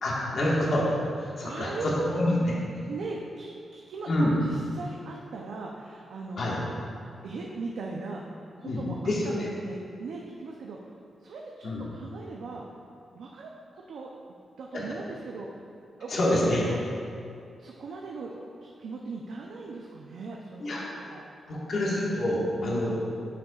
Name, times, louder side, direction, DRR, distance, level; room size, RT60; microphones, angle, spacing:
voice 1, 0.0-0.9 1.2-2.5 4.1-4.4 6.4-6.6 8.6-9.5 11.6-11.9 14.7-14.8 16.1-16.6 20.6-20.8 21.5-23.0, left 1 dB, 55° left, -5 dB, 1.6 m, -27 dB
voice 2, 1.4-2.1 2.9-6.7 7.2-10.9 11.2-12.6 13.1-14.1 14.6-15.6 16.0-16.1 16.4-16.8 17.6-18.3 18.6-21.3 22.6-23.0, right 3 dB, 80° right, -1 dB, 0.6 m, -39 dB
10.0 x 6.7 x 2.4 m, 2.5 s
cardioid pair, 115°, 0 cm